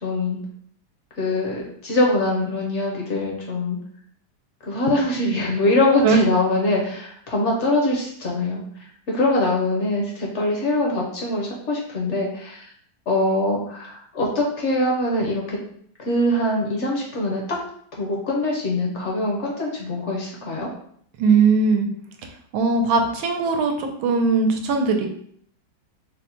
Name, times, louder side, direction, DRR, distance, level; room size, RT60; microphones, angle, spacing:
voice 1, 0.0-0.4 1.2-3.8 4.6-8.6 9.1-12.6 13.1-15.6 16.0-17.6 17.9-20.7, left 1 dB, 55° left, -2 dB, 0.8 m, -23 dB
voice 2, 21.2-21.9 22.5-25.1, right 4 dB, 85° right, 5 dB, 1.4 m, -19 dB
4.0 x 2.1 x 4.3 m, 0.63 s
omnidirectional pair, 2.2 m